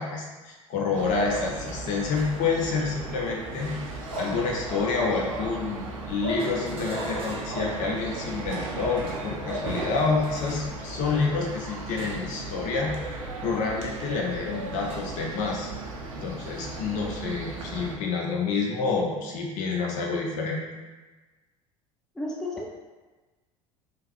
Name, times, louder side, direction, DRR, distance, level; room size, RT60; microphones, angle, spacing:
voice 1, 0.0-3.7 4.2-13.0 13.4-15.7 16.1-20.6, left 4 dB, 45° left, 0 dB, 0.6 m, -28 dB
sound 1, 0.9-18.0, right 2 dB, 70° right, 0.5 m, -35 dB
sound 2, 2.1-2.5 4.0-4.8 6.4-7.8 9.0-10.7 12.0-12.4 12.8-13.0 14.9-15.0, right 1 dB, 35° right, 0.7 m, -42 dB
voice 2, 22.2-22.7, left 1 dB, 5° left, -3 dB, 0.3 m, -32 dB
3.2 x 2.1 x 3.1 m, 1.2 s
figure-of-eight pair, 65°, 18 cm